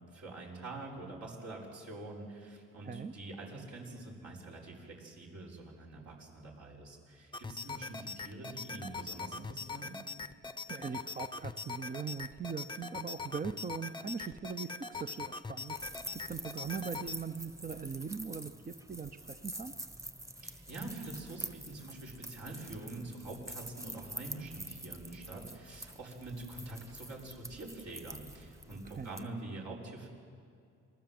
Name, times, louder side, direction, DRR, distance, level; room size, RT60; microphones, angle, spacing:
voice 1, 0.1-10.0 20.4-30.1, right 2 dB, 65° right, -3 dB, 6.4 m, -45 dB
sound 1, 7.3-17.2, left 4 dB, 15° left, 0.8 m, -42 dB
voice 2, 10.7-19.7 28.8-29.1, right 6 dB, 30° right, 9 dB, 0.8 m, -41 dB
sound 2, 15.7-29.2, right 1 dB, 10° right, 1.3 m, -47 dB
27.5 x 20.0 x 7.9 m, 2.4 s
cardioid pair, 90°, 30 cm